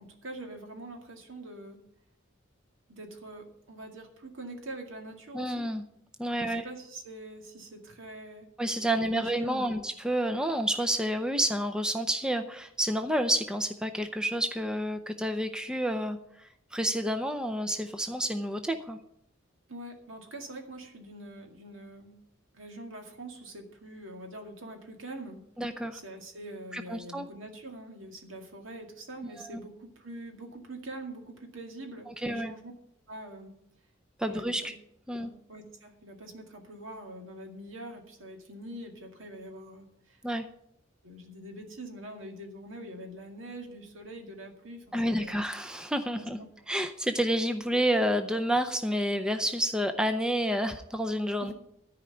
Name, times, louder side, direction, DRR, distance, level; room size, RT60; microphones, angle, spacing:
voice 1, 0.0-1.8 2.9-5.7 6.4-8.5 8.9-9.9 19.7-22.2 22.5-25.4 25.9-32.7 33.1-33.5 34.3-34.7 35.1-40.2 41.0-45.4 46.2-46.3 47.0-47.1 51.4-51.5, right 1 dB, 70° right, 3 dB, 2.1 m, -44 dB
voice 2, 5.3-5.8 6.2-6.6 8.6-19.0 25.6-26.0 26.7-27.3 29.4-29.6 32.1-32.5 34.2-34.7 35.1-35.3 40.2-40.4 44.9-46.4 46.7-51.5, equal, 5° right, 7 dB, 0.5 m, -29 dB
13.5 x 5.0 x 8.9 m, 0.76 s
head